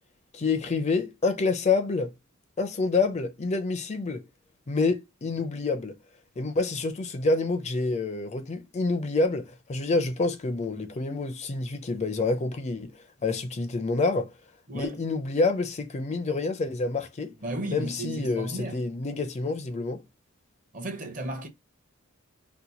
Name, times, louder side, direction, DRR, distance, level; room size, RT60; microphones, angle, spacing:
voice 1, 0.3-2.1 2.6-4.2 4.7-6.0 6.4-14.3 14.7-17.3 17.7-20.0, left 3 dB, 35° left, 0.4 m, -27 dB
voice 2, 14.7-15.0 17.4-18.8 20.7-21.5, right 1 dB, 40° right, 0.8 m, -34 dB
2.9 x 2.2 x 3.8 m
head